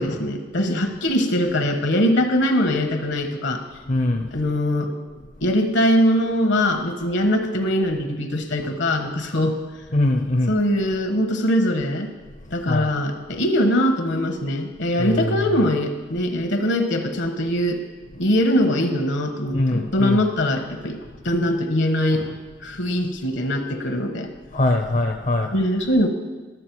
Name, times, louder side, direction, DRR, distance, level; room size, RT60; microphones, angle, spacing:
voice 1, 0.0-3.6 4.3-4.9 5.4-9.6 10.5-12.1 12.5-17.8 18.2-21.0 21.2-22.4 22.6-24.3 25.5-26.1, equal, 75° left, 6 dB, 1.1 m, -22 dB
voice 2, 3.8-4.4 5.4-5.5 9.9-10.6 12.3-12.9 15.0-15.7 18.1-18.2 19.5-20.2 22.7-22.8 24.5-25.6, left 2 dB, 40° left, 2 dB, 0.6 m, -23 dB
12.5 x 7.3 x 4.6 m, 1.3 s
head